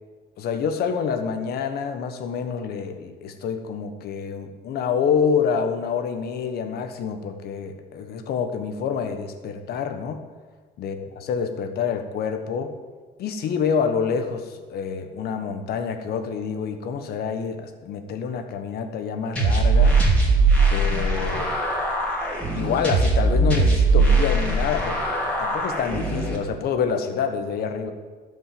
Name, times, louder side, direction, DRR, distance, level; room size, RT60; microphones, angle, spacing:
voice 1, 0.4-10.2 10.8-12.7 13.2-20.0 20.7-21.5 22.5-27.9, left 6 dB, 65° left, 7 dB, 1.3 m, -27 dB
sound 1, 19.4-26.4, right 3 dB, 5° left, 3.1 m, -20 dB
12.5 x 5.4 x 7.6 m, 1.5 s
cardioid pair, 110°, 17 cm